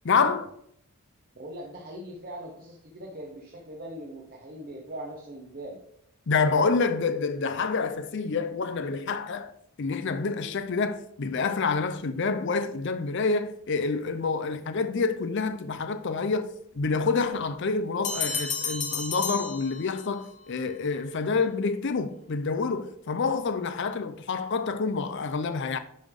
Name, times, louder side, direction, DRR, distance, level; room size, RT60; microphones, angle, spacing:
voice 1, 0.0-0.5 6.3-9.5 9.8-25.8, left 4 dB, 55° left, 0.5 m, -27 dB
voice 2, 1.3-5.8, right 1 dB, 40° right, 0.9 m, -41 dB
sound 1, 18.0-20.3, left 5 dB, 35° left, 0.8 m, -32 dB
10.5 x 3.5 x 3.6 m
head